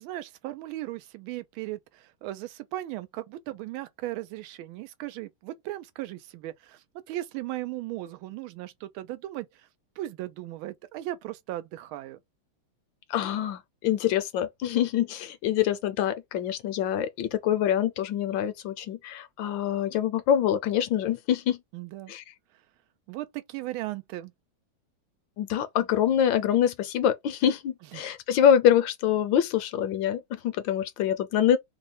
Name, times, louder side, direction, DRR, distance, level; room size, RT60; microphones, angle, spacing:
voice 1, 0.0-9.7 10.0-12.2 21.7-22.1 23.1-24.3 27.9-28.1, right 15 dB, 85° right, 1.4 m, -37 dB
voice 2, 13.1-21.6 22.1-22.2 25.4-31.6, left 9 dB, 75° left, 1.2 m, -25 dB
3.4 x 2.1 x 4.0 m
omnidirectional pair, 2.2 m